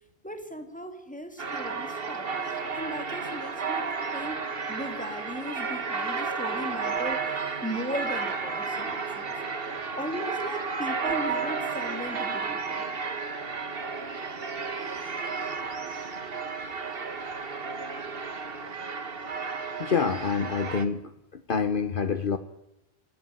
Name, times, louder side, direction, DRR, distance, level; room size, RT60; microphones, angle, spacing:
voice 1, 0.2-2.3 2.7-3.9 4.1-7.3 7.6-9.4 10.0-12.8, equal, 5° left, 7 dB, 2.8 m, -37 dB
sound 1, 1.4-20.9, right 4 dB, 65° right, 1.7 m, -32 dB
voice 2, 19.8-21.0 21.3-22.4, left 6 dB, 55° left, 11 dB, 1.2 m, -27 dB
26.5 x 16.0 x 9.7 m, 0.91 s
omnidirectional pair, 1.1 m